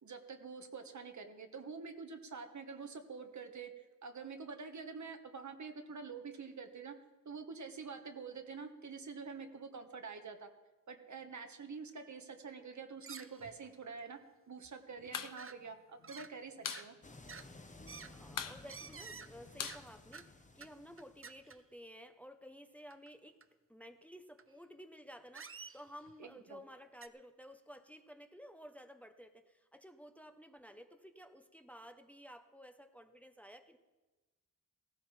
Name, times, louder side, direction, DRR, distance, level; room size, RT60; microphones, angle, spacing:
voice 1, 0.0-7.0 7.2-10.5 10.9-14.2 14.5-16.9 26.2-26.6, right 5 dB, 60° right, 6 dB, 1.6 m, -47 dB
sound 1, 13.0-13.8 14.0-14.1 14.6-14.7 15.0-15.6 16.0-16.3 16.7-16.9 17.3-17.5 17.9-18.1 18.7-19.3 19.6-19.8 20.1-20.3 20.6-20.7 21.0-21.6 22.9-23.1 23.4-23.5 24.4-24.5 25.3-26.1 27.0-27.1, right 5 dB, 40° right, 0.8 m, -50 dB
sound 2, 15.0-15.4 15.6-15.7 16.0-16.9 17.2-17.3 17.6-18.0 18.3-20.7, left 8 dB, 75° left, 0.9 m, -42 dB
sound 3, 17.0-21.5, left 2 dB, 25° left, 1.2 m, -56 dB
voice 2, 18.1-23.4 23.7-33.8, equal, 5° left, 8 dB, 1.0 m, -54 dB
16.0 x 14.5 x 4.5 m, 1.2 s
cardioid pair, 60°, 33 cm